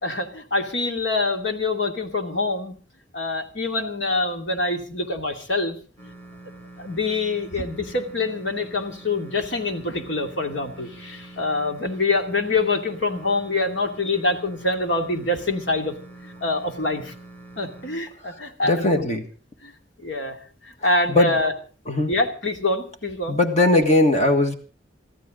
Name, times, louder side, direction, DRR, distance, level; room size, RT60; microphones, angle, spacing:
voice 1, 0.0-2.7 3.1-5.8 6.8-15.9 16.2-17.1 17.6-19.0 19.6-19.7 20.0-20.4 20.6-21.5 22.1-23.4, left 2 dB, 90° left, 4 dB, 2.6 m, -25 dB
sound 1, 6.0-18.0, right 2 dB, 10° left, 2.9 m, -44 dB
voice 2, 18.2-19.2 21.1-21.4 21.9-22.1 23.3-24.5, left 2 dB, 40° left, 6 dB, 1.6 m, -20 dB
24.0 x 14.5 x 3.8 m, 0.37 s
head